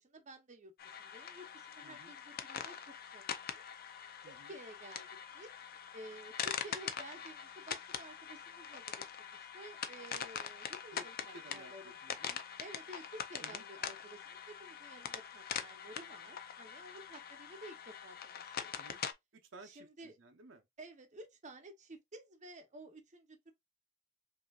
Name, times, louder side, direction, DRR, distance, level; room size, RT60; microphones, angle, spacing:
voice 1, 0.0-3.6 4.3-5.1 5.3-5.5 5.9-12.0 12.6-18.7 19.6-20.1 20.8-23.5, right 1 dB, 40° right, 0.8 m, -53 dB
sound 1, 0.8-19.1, left 8 dB, 50° left, 0.5 m, -43 dB
voice 2, 1.8-2.1 4.2-4.6 10.9-12.4 13.4-13.7 18.8-19.0 19.3-20.7, right 2 dB, 75° right, 0.8 m, -56 dB
5.3 x 2.8 x 2.4 m
head